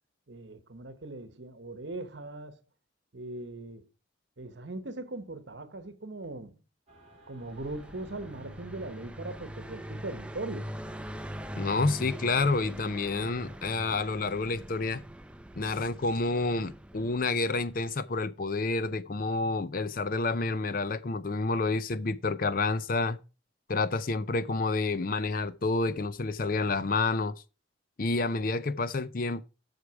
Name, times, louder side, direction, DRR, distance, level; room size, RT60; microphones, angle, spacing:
voice 1, 0.3-2.6 3.1-3.9 4.4-6.6 7.3-10.7, right 2 dB, 65° right, 1.1 m, -40 dB
sound 1, 6.9-13.6, right 2 dB, 35° right, 1.8 m, -58 dB
Car passing by, 7.4-18.0, equal, 5° right, 0.5 m, -42 dB
voice 2, 11.6-15.0 15.6-23.2 23.7-27.3 28.0-29.4, left 3 dB, 45° left, 0.5 m, -29 dB
8.1 x 6.5 x 4.7 m
head